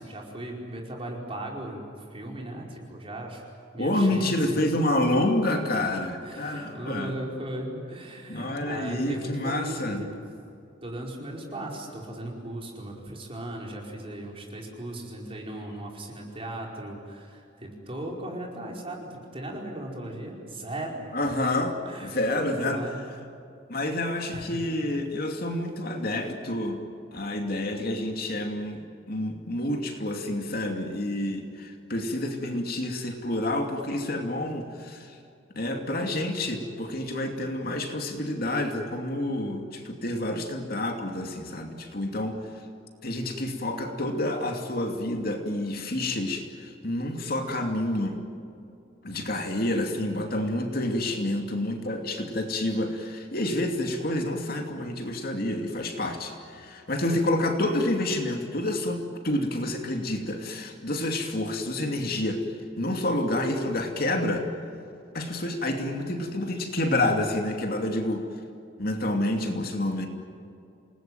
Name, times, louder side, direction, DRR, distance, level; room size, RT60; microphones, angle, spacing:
voice 1, 0.0-3.4 3.7-4.7 6.2-10.2 10.8-21.0 21.8-23.1 24.3-24.6, right 1 dB, 30° right, -1 dB, 4.9 m, -37 dB
voice 2, 3.8-7.1 8.3-10.0 21.1-21.8 22.0-22.9 23.7-26.8 27.1-35.2 35.5-42.4 43.0-48.2 49.0-62.4 62.8-64.5 65.1-68.2 68.8-70.1, left 1 dB, 55° left, 3 dB, 2.6 m, -28 dB
28.0 x 19.5 x 9.2 m, 2.7 s
head